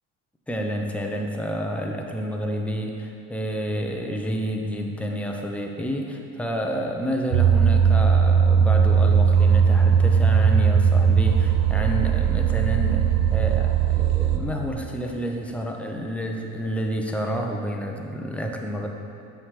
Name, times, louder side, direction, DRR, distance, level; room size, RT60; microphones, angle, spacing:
voice 1, 0.5-18.9, equal, 5° left, 1 dB, 0.7 m, -29 dB
sound 1, 7.3-14.4, right 7 dB, 85° right, 0.7 m, -18 dB
7.2 x 5.6 x 4.8 m, 2.6 s
supercardioid pair, 100°, 39 cm